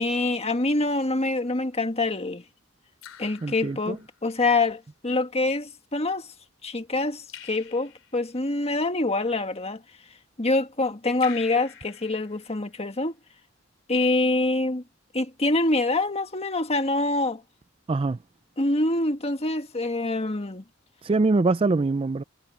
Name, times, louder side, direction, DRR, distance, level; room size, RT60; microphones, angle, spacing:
voice 1, 0.0-2.4 3.2-6.3 6.6-9.8 10.4-13.1 13.9-14.8 15.1-17.4 18.6-20.6, left 2 dB, 30° left, 1.6 m, -25 dB
Raindrop / Drip, 1.2-1.7 3.0-4.4 7.3-8.4 11.2-12.9, left 8 dB, 75° left, 3.6 m, -46 dB
voice 2, 3.4-4.0 17.9-18.2 21.0-22.2, right 3 dB, 30° right, 0.4 m, -23 dB
head